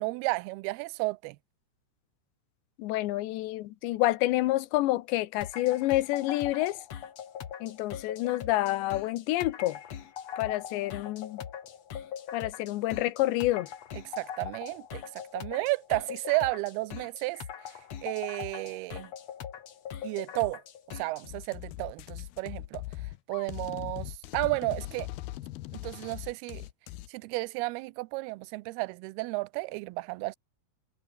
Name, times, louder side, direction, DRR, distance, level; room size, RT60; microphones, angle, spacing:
voice 1, 0.0-1.4 14.1-15.0 15.3-17.4 18.0-19.1 20.0-20.6 20.9-22.8 23.3-25.1 25.7-26.7 27.1-30.4, right 23 dB, 80° right, 2.4 m, -32 dB
voice 2, 2.8-6.8 7.6-9.8 10.4-11.4 12.3-13.7, left 17 dB, 90° left, 3.3 m, -28 dB
sound 1, 5.4-21.3, left 8 dB, 50° left, 2.4 m, -41 dB
sound 2, 21.2-27.1, left 16 dB, 75° left, 2.6 m, -40 dB
omnidirectional pair, 4.9 m